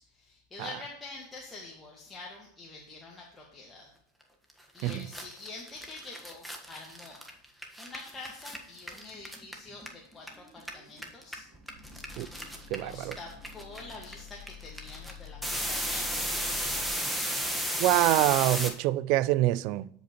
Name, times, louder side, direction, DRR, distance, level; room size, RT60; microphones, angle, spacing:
voice 1, 0.0-3.9 4.7-7.2 7.8-11.5 12.4-17.3, left 3 dB, 15° left, 1.6 m, -46 dB
sound 1, 4.5-4.6 4.8-10.3 10.6-18.7, equal, 5° right, 1.2 m, -34 dB
sound 2, 9.5-9.6 10.1-16.9, left 7 dB, 35° right, 1.7 m, -48 dB
voice 2, 12.7-13.2 17.8-19.9, right 16 dB, 55° right, 0.3 m, -25 dB
13.0 x 5.2 x 3.0 m
hypercardioid pair, 95°, 0 cm